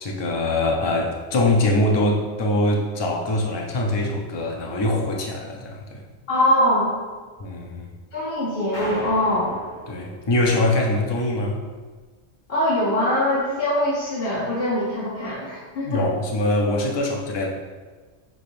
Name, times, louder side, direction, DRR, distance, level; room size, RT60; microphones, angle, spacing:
voice 1, 0.0-6.0 7.4-7.9 9.9-11.6 15.8-17.5, left 1 dB, 40° left, 1 dB, 0.4 m, -23 dB
voice 2, 6.3-6.9 8.1-9.5 12.5-16.0, left 1 dB, 60° left, -7 dB, 1.0 m, -22 dB
sound 1, 8.7-11.1, equal, 80° left, 1.5 m, -37 dB
5.7 x 3.3 x 2.5 m, 1.4 s
omnidirectional pair, 1.1 m